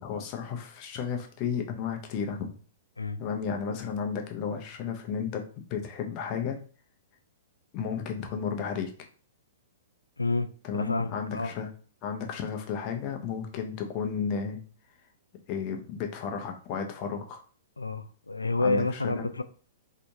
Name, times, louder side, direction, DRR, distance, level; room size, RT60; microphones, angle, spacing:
voice 1, 0.0-2.5 3.2-5.4 5.7-6.6 7.7-8.9 10.6-11.7 12.0-14.6 15.5-17.4 18.6-19.3, left 6 dB, 35° left, 0.7 m, -33 dB
voice 2, 10.7-11.5 17.8-19.4, left 3 dB, 85° left, 0.3 m, -29 dB
3.3 x 2.9 x 2.7 m
figure-of-eight pair, 110°, 0 cm